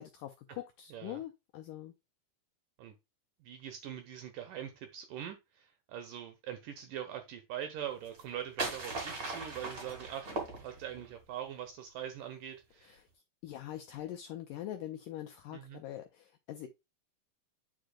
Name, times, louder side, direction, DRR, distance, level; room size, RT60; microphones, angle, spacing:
voice 1, 0.0-1.9 12.9-13.0 13.4-16.7, left 12 dB, 85° left, 1.9 m, -43 dB
voice 2, 0.9-1.2 2.8-2.9 3.4-13.0 15.5-15.8, right 10 dB, 75° right, 2.0 m, -43 dB
sound 1, 8.1-11.1, right 3 dB, 45° right, 1.2 m, -39 dB
9.0 x 4.8 x 2.2 m
omnidirectional pair, 4.6 m